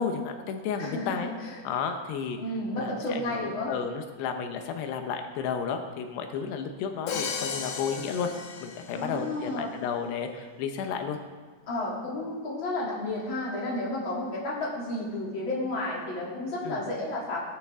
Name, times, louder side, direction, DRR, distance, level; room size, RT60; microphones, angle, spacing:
voice 1, 0.0-1.3 1.6-2.4 2.7-8.3 8.6-11.2 16.6-16.8, left 6 dB, 90° left, 5 dB, 3.2 m, -32 dB
voice 2, 0.8-1.6 2.4-3.7 8.9-9.7 11.7-17.4, left 2 dB, 30° left, -5 dB, 3.4 m, -32 dB
Crash cymbal, 7.1-9.3, left 5 dB, 65° left, 2.3 m, -35 dB
19.0 x 12.0 x 3.7 m, 1.4 s
omnidirectional pair, 4.7 m